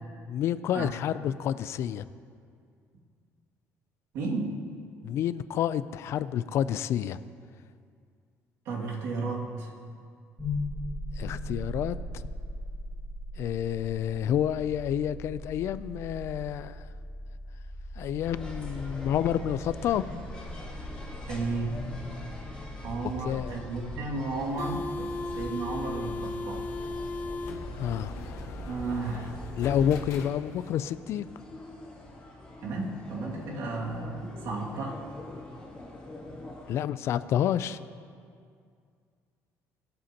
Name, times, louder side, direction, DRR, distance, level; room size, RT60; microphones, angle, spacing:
voice 1, 0.3-2.1 5.0-7.2 11.2-12.0 13.4-16.9 18.0-20.0 23.2-23.6 27.8-28.1 29.6-31.2 36.7-37.8, left 10 dB, 55° left, 15 dB, 0.4 m, -29 dB
voice 2, 4.1-4.6 8.7-9.7 21.3-21.8 22.8-26.7 28.7-29.4 32.6-35.0, right 3 dB, 75° right, -3 dB, 2.2 m, -33 dB
sound 1, 10.4-22.4, equal, 15° right, 3.3 m, -39 dB
sound 2, 18.2-36.7, left 1 dB, 15° left, 2.6 m, -42 dB
sound 3, 24.3-30.8, left 3 dB, 75° left, 1.1 m, -38 dB
23.5 x 7.8 x 2.9 m, 2.3 s
cardioid pair, 155°, 6 cm